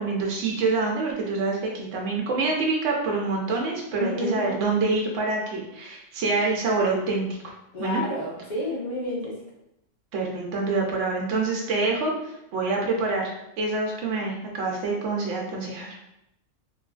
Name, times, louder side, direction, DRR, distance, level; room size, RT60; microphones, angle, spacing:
voice 1, 0.0-7.3 7.8-8.0 10.1-15.9, right 3 dB, 70° right, -1 dB, 0.9 m, -26 dB
voice 2, 4.0-4.5 7.7-9.3, left 1 dB, 40° left, -5 dB, 0.8 m, -29 dB
2.9 x 2.4 x 2.2 m, 0.81 s
omnidirectional pair, 1.3 m